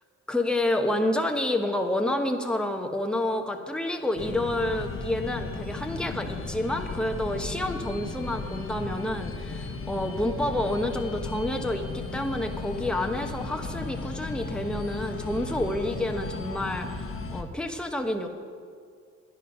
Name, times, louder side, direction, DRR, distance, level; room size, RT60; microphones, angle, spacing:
voice 1, 0.3-18.3, left 1 dB, 5° left, 4 dB, 1.0 m, -29 dB
sound 1, 4.2-17.4, left 3 dB, 45° left, 1.2 m, -35 dB
10.5 x 10.0 x 5.5 m, 2.1 s
cardioid pair, 90°, 30 cm